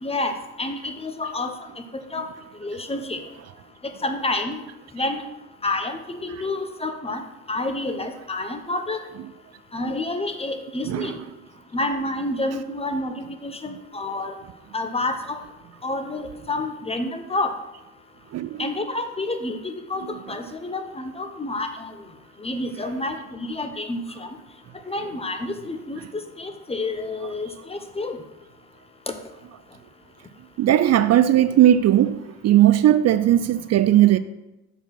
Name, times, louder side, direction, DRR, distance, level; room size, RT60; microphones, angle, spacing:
voice 1, 0.0-1.5 2.1-2.3 2.6-3.2 4.0-4.6 4.9-5.2 5.6-9.0 9.7-11.2 11.7-14.3 14.7-15.4 15.8-17.5 18.6-21.9 22.4-24.3 24.8-28.2 29.1-29.2, left 2 dB, 20° left, 0.9 m, -29 dB
voice 2, 10.8-11.3 18.3-18.7 20.0-20.3 22.7-23.0 25.0-25.1 26.0-26.1 27.2-27.3 30.6-34.2, right 12 dB, 60° right, 0.4 m, -19 dB
6.7 x 4.7 x 5.8 m
cardioid pair, 90°, 30 cm